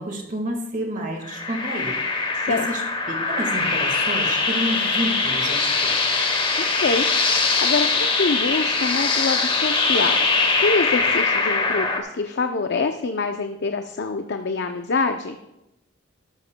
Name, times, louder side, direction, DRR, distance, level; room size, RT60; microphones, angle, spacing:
voice 1, 0.0-6.3, equal, 40° right, 3 dB, 1.6 m, -30 dB
sound 1, 1.2-12.0, left 4 dB, 25° left, 1.0 m, -22 dB
voice 2, 6.6-7.1 7.4-10.3 10.6-15.4, left 4 dB, 60° left, 6 dB, 0.5 m, -25 dB
12.0 x 12.0 x 2.2 m, 0.90 s
head